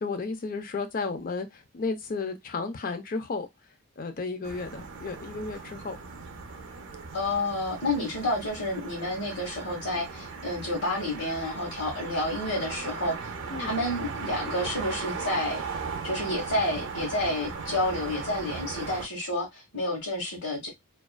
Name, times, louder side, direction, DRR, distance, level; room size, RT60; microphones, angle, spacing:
voice 1, 0.0-3.5 4.0-6.0 8.0-8.1 13.5-13.7, left 4 dB, 40° left, 0.4 m, -33 dB
sound 1, 4.4-19.1, right 4 dB, 55° right, 0.5 m, -37 dB
voice 2, 7.1-13.3 13.6-15.6 16.0-20.7, left 1 dB, 80° left, 1.0 m, -30 dB
2.4 x 2.3 x 2.2 m
head